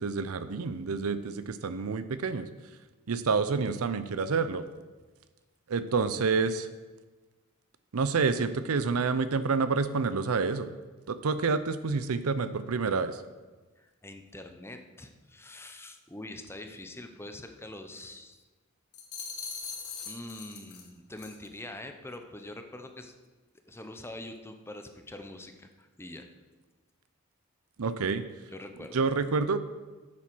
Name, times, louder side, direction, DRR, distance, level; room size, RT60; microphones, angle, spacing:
voice 1, 0.0-2.5 3.1-4.6 5.7-6.7 7.9-10.7 11.1-13.2 27.8-28.2 28.9-29.6, right 4 dB, 75° right, 13 dB, 0.6 m, -28 dB
voice 2, 13.8-18.4 20.1-23.1 23.7-26.3 28.5-29.0, left 1 dB, 10° left, 6 dB, 0.7 m, -44 dB
sound 1, 18.9-20.9 21.2-21.5, left 5 dB, 70° left, 1.7 m, -40 dB
8.7 x 7.3 x 6.1 m, 1.3 s
head